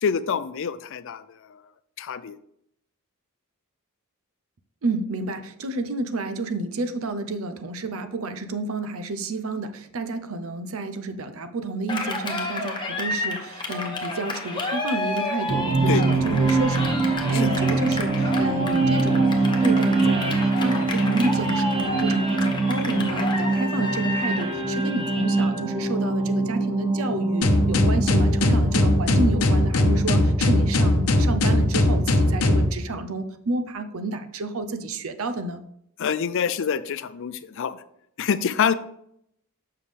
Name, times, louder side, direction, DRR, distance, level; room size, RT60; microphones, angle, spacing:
voice 1, 0.0-1.6 2.0-2.4 15.9-16.0 17.3-17.5 36.0-37.8 38.2-38.7, left 7 dB, 60° left, 14 dB, 0.4 m, -26 dB
voice 2, 4.8-17.0 17.3-35.6, right 2 dB, 70° right, 10 dB, 0.6 m, -30 dB
Cheering, 11.9-24.5, left 2 dB, 20° left, 0.9 m, -30 dB
sound 1, 15.5-32.6, right 3 dB, 25° right, 1.0 m, -24 dB
sound 2, 27.4-32.7, left 1 dB, 85° left, 0.8 m, -19 dB
7.2 x 5.6 x 3.3 m, 0.73 s
head